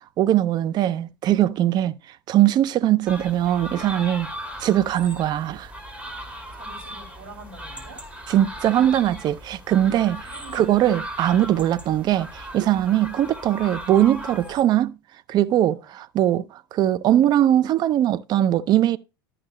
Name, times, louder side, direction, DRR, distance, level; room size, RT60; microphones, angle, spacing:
voice 1, 0.2-2.0 2.3-4.3 4.6-5.7 8.3-10.2 10.5-15.0 15.3-19.0, right 12 dB, 35° right, 0.5 m, -20 dB
sound 1, 3.1-14.6, equal, 10° right, 2.3 m, -38 dB
voice 2, 6.5-8.0 10.3-10.7 15.6-15.9, right 2 dB, 50° right, 4.7 m, -44 dB
12.5 x 5.9 x 3.0 m
figure-of-eight pair, 80°, 13 cm